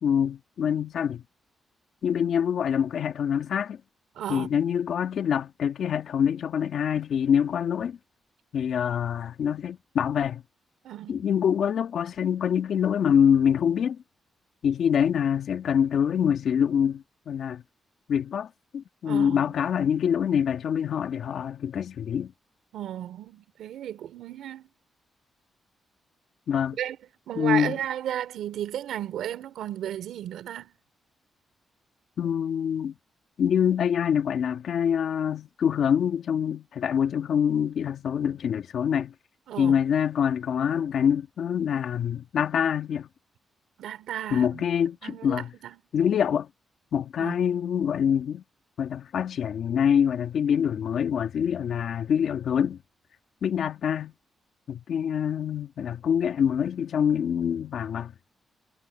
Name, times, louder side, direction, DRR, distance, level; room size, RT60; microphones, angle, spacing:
voice 1, 0.0-1.2 2.0-3.8 4.3-8.0 8.5-10.4 11.1-14.0 14.6-17.6 18.1-22.3 26.5-26.8 27.3-27.8 32.2-33.0 33.4-39.1 39.6-43.1 44.3-45.5 45.9-46.5 46.9-48.4 48.8-52.8 53.4-54.1 54.7-58.1, left 8 dB, 75° left, 1.7 m, -25 dB
voice 2, 4.2-4.5 10.8-11.3 19.1-19.5 22.7-24.7 26.7-27.0 27.3-30.7 39.5-39.7 43.8-44.6 45.0-45.8 47.2-47.3, right 11 dB, 90° right, 3.7 m, -34 dB
cardioid pair, 80°, 0 cm